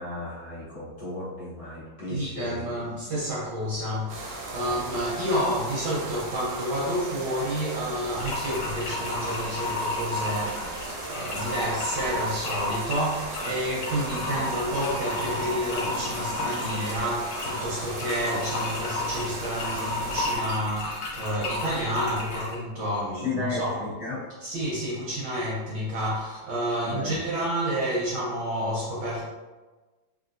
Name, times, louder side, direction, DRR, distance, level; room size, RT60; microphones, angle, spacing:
voice 1, 0.0-2.7 4.5-4.8 23.1-24.3 26.9-27.2, left 2 dB, 55° left, -9 dB, 1.2 m, -34 dB
voice 2, 2.1-23.8 24.4-29.3, equal, 70° right, -6 dB, 1.0 m, -30 dB
sound 1, 4.1-20.4, right 2 dB, 85° right, 1.5 m, -37 dB
sound 2, 8.2-22.6, left 2 dB, 90° left, 1.7 m, -33 dB
3.6 x 2.4 x 2.5 m, 1.2 s
omnidirectional pair, 2.3 m